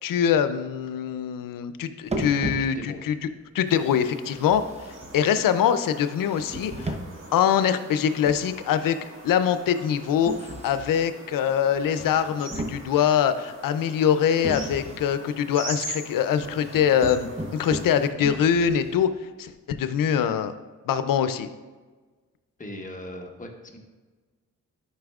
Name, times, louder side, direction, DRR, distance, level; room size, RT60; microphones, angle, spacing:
voice 1, 0.0-3.1 3.5-7.0 7.3-9.0 9.2-20.5 20.9-21.5, left 8 dB, 80° left, 11 dB, 0.6 m, -23 dB
sound 1, 2.1-3.1 4.3-5.5 6.2-7.4 8.3-8.7 10.2-11.1 11.8-13.3 14.4-15.2 16.4-19.2, right 1 dB, 20° right, 0.8 m, -36 dB
voice 2, 2.6-3.1 22.6-23.8, left 1 dB, 25° left, 2 dB, 1.2 m, -39 dB
sound 2, 3.7-18.1, right 1 dB, 40° right, 1.7 m, -42 dB
11.5 x 5.4 x 2.4 m, 1.3 s
cardioid pair, 80°, 33 cm